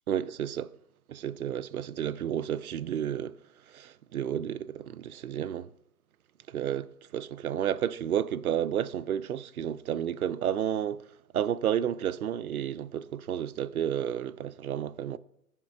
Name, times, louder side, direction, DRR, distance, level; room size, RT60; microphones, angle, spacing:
voice 1, 0.1-0.7 1.1-3.4 3.7-5.7 6.5-11.0 11.3-15.2, right 9 dB, 70° right, 0.5 m, -31 dB
10.5 x 3.6 x 4.8 m
hypercardioid pair, 170°, 46 cm